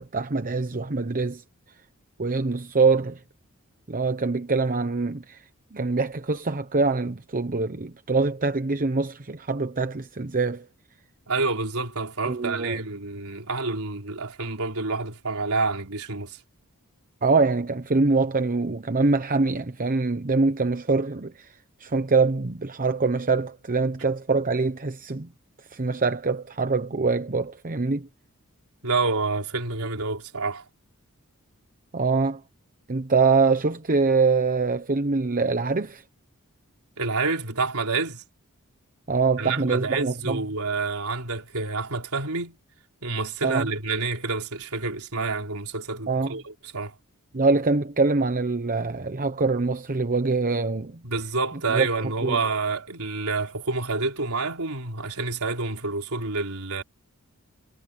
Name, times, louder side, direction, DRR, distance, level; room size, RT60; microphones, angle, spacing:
voice 1, 0.0-1.4 2.2-3.2 3.9-5.4 5.7-10.7 12.3-12.8 17.2-21.5 21.8-25.3 25.7-28.1 31.9-32.4 32.9-36.0 39.1-40.4 43.4-43.7 46.1-46.4 47.3-51.0 51.7-51.9 52.2-52.4, right 4 dB, 40° right, 1.0 m, -24 dB
voice 2, 11.3-16.4 28.8-30.6 37.0-38.2 39.4-42.6 43.0-46.9 51.0-56.8, right 3 dB, 90° right, 3.9 m, -28 dB
head